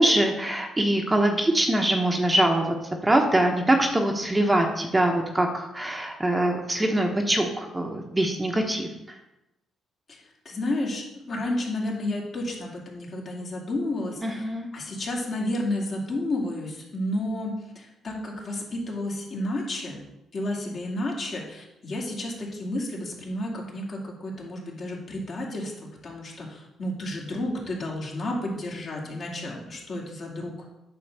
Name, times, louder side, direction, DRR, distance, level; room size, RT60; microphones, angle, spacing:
voice 1, 0.0-2.7 3.0-9.2 14.2-14.7, right 1 dB, 15° right, 3 dB, 1.0 m, -23 dB
voice 2, 10.4-14.4 14.7-20.0 20.3-25.7 26.0-30.7, left 1 dB, 50° left, -2 dB, 2.5 m, -31 dB
8.9 x 3.9 x 6.7 m, 0.92 s
cardioid pair, 90°, 0 cm